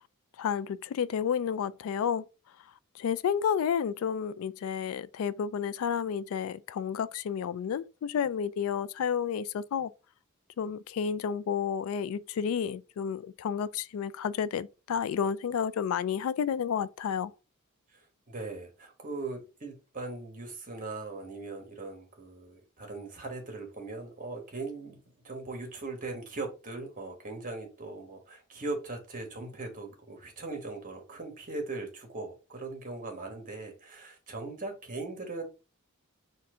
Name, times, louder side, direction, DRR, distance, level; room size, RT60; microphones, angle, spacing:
voice 1, 0.4-2.2 3.0-9.9 10.6-17.3, left 7 dB, 70° left, 0.3 m, -31 dB
voice 2, 18.3-35.4, right 3 dB, 40° right, 1.3 m, -39 dB
4.2 x 2.5 x 4.8 m
head